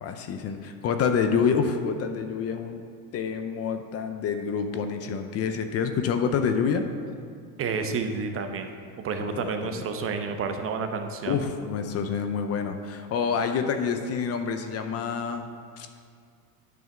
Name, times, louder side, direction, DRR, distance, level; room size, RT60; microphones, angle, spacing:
voice 1, 0.0-2.8 3.1-6.8 9.3-9.8 11.2-15.5 15.8-15.9, left 6 dB, 35° left, 7 dB, 0.5 m, -27 dB
voice 2, 7.6-8.7 9.0-11.4, right 5 dB, 35° right, 6 dB, 0.6 m, -30 dB
9.4 x 3.5 x 5.8 m, 2.2 s
supercardioid pair, 105°, 41 cm